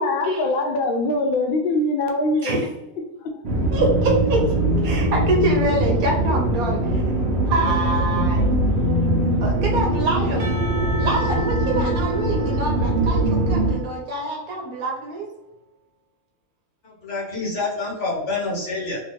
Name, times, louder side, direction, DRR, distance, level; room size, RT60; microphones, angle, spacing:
voice 1, 0.0-2.6 3.2-3.4, left 2 dB, 75° left, 3 dB, 0.5 m, -22 dB
sound 1, 3.4-13.7, right 1 dB, 55° right, 0.9 m, -21 dB
voice 2, 3.7-4.5 4.8-7.0 7.5-8.4 9.4-10.6 11.0-15.3, right 2 dB, 80° right, -1 dB, 1.2 m, -25 dB
Percussion / Church bell, 10.4-14.8, right 1 dB, 35° right, 0.3 m, -36 dB
voice 3, 16.8-19.0, left 3 dB, 55° left, -4 dB, 1.4 m, -27 dB
3.0 x 2.8 x 3.0 m, 0.97 s
omnidirectional pair, 1.5 m